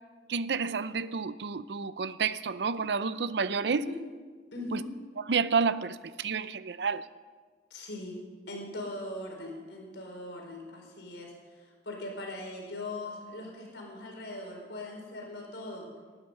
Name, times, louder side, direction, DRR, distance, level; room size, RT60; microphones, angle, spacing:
voice 1, 0.3-3.8 4.7-4.8 5.2-7.1, right 5 dB, 70° right, 0.6 m, -30 dB
voice 2, 4.5-4.9 7.7-8.2 8.5-15.9, left 2 dB, 85° left, 4.5 m, -40 dB
19.0 x 12.0 x 5.5 m
head